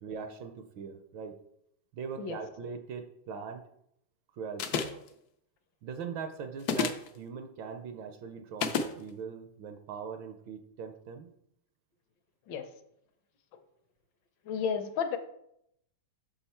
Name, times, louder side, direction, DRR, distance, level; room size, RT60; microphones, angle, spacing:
voice 1, 0.0-1.4 1.9-3.6 4.3-4.9 5.8-11.3, right 6 dB, 70° right, 7 dB, 1.2 m, -41 dB
sound 1, 4.6-5.1 6.6-7.1 8.6-8.9, left 6 dB, 85° left, 0.8 m, -29 dB
voice 2, 14.5-15.2, left 7 dB, 70° left, 8 dB, 1.2 m, -32 dB
6.4 x 5.7 x 4.2 m, 0.76 s
omnidirectional pair, 2.4 m